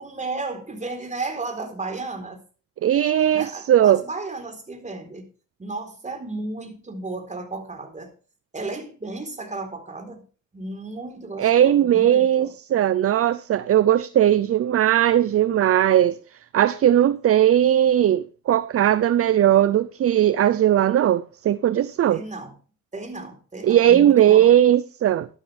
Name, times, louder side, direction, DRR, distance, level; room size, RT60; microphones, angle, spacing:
voice 1, 0.0-2.4 3.3-5.3 5.6-8.1 8.5-10.2 10.5-12.5 22.1-22.5 22.9-24.5, right 3 dB, 25° right, 4.0 m, -34 dB
voice 2, 2.8-4.0 11.4-22.2 23.6-25.3, right 11 dB, 50° right, 0.6 m, -18 dB
12.5 x 12.0 x 3.4 m
cardioid pair, 90°, 30 cm